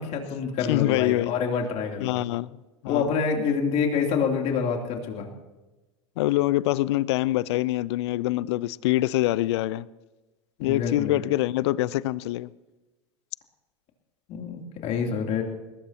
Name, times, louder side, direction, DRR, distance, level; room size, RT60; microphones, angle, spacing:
voice 1, 0.0-2.2 2.9-5.3 10.6-11.2 14.3-15.4, left 6 dB, 45° left, 2 dB, 3.1 m, -27 dB
voice 2, 0.7-1.3 2.0-2.6 2.8-3.1 6.2-9.9 10.6-12.5, left 16 dB, 65° left, 21 dB, 0.5 m, -25 dB
21.5 x 20.0 x 2.9 m, 1.1 s
hypercardioid pair, 95°, 16 cm